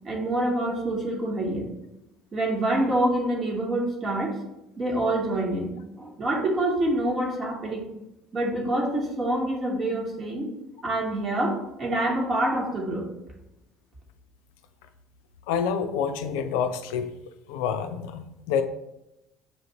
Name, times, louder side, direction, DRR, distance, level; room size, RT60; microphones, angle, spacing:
voice 1, 0.0-1.7 2.3-4.4 4.8-7.8 8.3-10.5 10.8-13.1, right 1 dB, 40° right, 0 dB, 1.3 m, -26 dB
voice 2, 15.5-17.1 17.5-18.6, left 7 dB, 75° left, 8 dB, 0.3 m, -27 dB
6.9 x 2.5 x 3.0 m, 0.91 s
hypercardioid pair, 70°, 0 cm